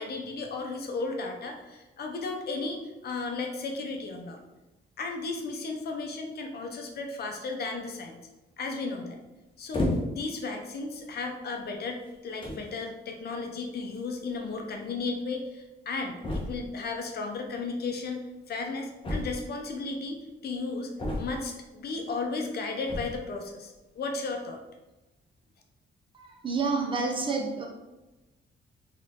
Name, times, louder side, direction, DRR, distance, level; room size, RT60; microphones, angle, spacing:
voice 1, 0.0-4.4 5.0-8.2 8.6-9.2 9.6-24.6, left 3 dB, 55° left, 3 dB, 0.7 m, -34 dB
sound 1, 9.7-10.3 11.1-11.3 12.1-12.2 12.4-12.7 13.9-14.0 14.3-14.4 14.6-14.7 16.2-16.8 19.0-19.7 21.0-21.6 22.8-23.3, left 1 dB, 25° left, 1.1 m, -32 dB
voice 2, 26.1-27.7, right 4 dB, 25° right, 1 dB, 0.6 m, -29 dB
4.6 x 3.1 x 3.5 m, 1.0 s
wide cardioid pair, 180°, 19 cm